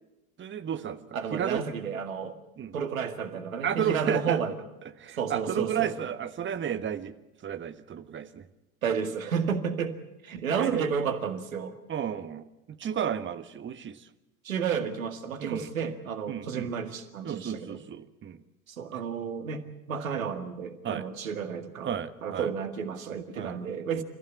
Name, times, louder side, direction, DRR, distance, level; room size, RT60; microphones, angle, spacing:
voice 1, 0.4-1.0 1.3-1.7 2.6-2.7 3.6-4.4 5.0-7.1 7.4-8.4 10.6-10.9 11.9-12.4 12.8-14.1 15.4-15.7 16.3-16.7 17.2-18.4 20.8-21.0 21.8-22.5 23.4-23.6, right 9 dB, 30° right, 11 dB, 1.4 m, -32 dB
voice 2, 1.1-2.3 2.7-4.6 5.2-6.0 8.8-10.0 10.2-11.8 14.4-17.8 18.7-21.9 22.2-24.0, right 6 dB, 75° right, 8 dB, 2.0 m, -31 dB
28.5 x 15.0 x 8.5 m, 0.98 s
figure-of-eight pair, 75°, 41 cm